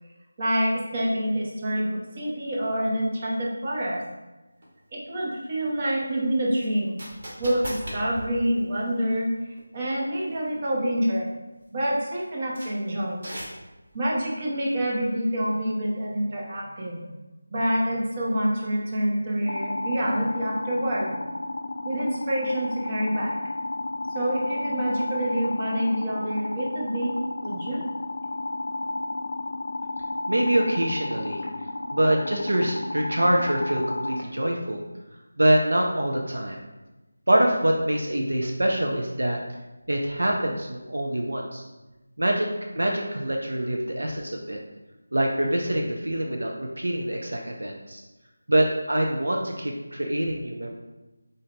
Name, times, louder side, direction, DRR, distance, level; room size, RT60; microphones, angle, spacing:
voice 1, 0.4-4.0 4.9-7.0 7.4-9.3 9.7-11.3 11.7-13.2 13.9-17.1 17.5-21.1 21.8-23.4 24.1-27.2 27.4-27.8, equal, 30° right, -3 dB, 0.9 m, -27 dB
sound 1, 4.6-4.7 6.6-9.3 9.6-9.7 10.4-10.6 11.0-11.1 11.6-11.7 12.6-12.7 13.2-13.9, equal, 50° right, 1.4 m, -37 dB
sound 2, 19.5-34.2, left 2 dB, 50° left, 0.3 m, -32 dB
voice 2, 30.3-31.4 31.9-34.8 35.4-36.6 37.3-39.4 39.9-41.6 42.2-42.5 42.7-44.6 45.1-48.0 48.5-50.7, right 1 dB, 70° right, 0 dB, 0.6 m, -25 dB
4.0 x 3.8 x 3.3 m, 1.1 s
figure-of-eight pair, 165°, 0 cm